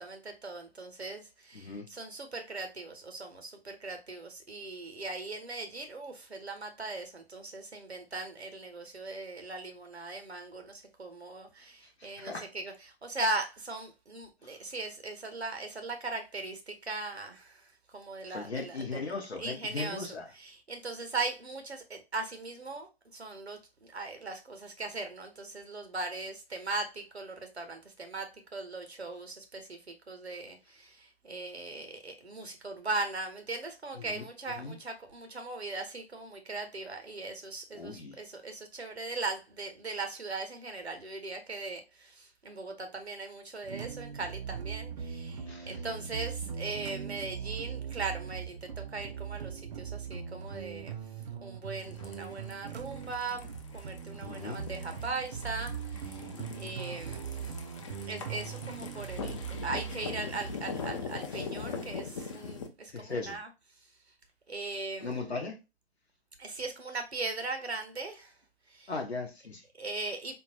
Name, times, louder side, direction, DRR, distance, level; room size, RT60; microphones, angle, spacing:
voice 1, 0.0-17.6 17.9-19.1 19.4-20.1 20.3-51.0 51.4-53.5 53.7-56.2 56.6-57.6 58.1-59.4 59.6-63.5 64.5-65.3 66.4-68.3 68.7-68.9 69.8-70.4, right 3 dB, 90° right, 0.9 m, -39 dB
voice 2, 1.5-1.9 12.0-12.5 14.4-14.5 18.3-20.3 33.9-34.3 34.6-34.8 37.7-38.2 45.5-45.8 51.9-52.0 54.3-54.6 62.9-63.4 65.0-65.6 68.9-69.6, left 3 dB, 85° left, 0.8 m, -38 dB
sound 1, 43.6-60.6, right 7 dB, 45° right, 0.4 m, -40 dB
sound 2, 51.8-62.7, left 5 dB, 30° left, 0.4 m, -42 dB
3.6 x 2.2 x 2.9 m
figure-of-eight pair, 125°, 32 cm